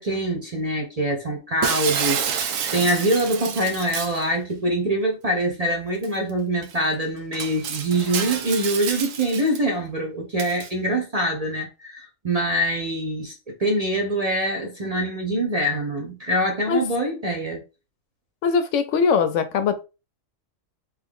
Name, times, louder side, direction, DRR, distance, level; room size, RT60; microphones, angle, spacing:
voice 1, 0.0-17.6, right 1 dB, 35° right, 0.6 m, -24 dB
Shatter, 1.6-4.2 6.0-6.1 6.6-6.7 7.3-9.6 10.4-10.7, right 7 dB, 75° right, 1.0 m, -28 dB
voice 2, 18.4-19.8, left 6 dB, 70° left, 0.9 m, -21 dB
3.4 x 3.1 x 3.6 m
omnidirectional pair, 1.4 m